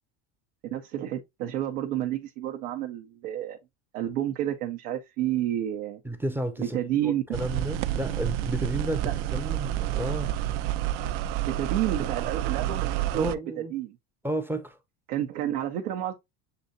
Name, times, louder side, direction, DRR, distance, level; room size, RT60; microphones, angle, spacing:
voice 1, 0.7-3.6 3.9-6.0 6.6-7.2 9.0-9.1 11.4-14.0 15.1-16.1, right 12 dB, 90° right, 0.9 m, -30 dB
voice 2, 6.0-10.3 13.1-13.7 14.2-14.8, right 1 dB, 5° right, 0.4 m, -32 dB
sound 1, 7.3-13.3, right 12 dB, 60° right, 0.5 m, -29 dB
6.9 x 2.7 x 2.6 m
supercardioid pair, 110°, 44 cm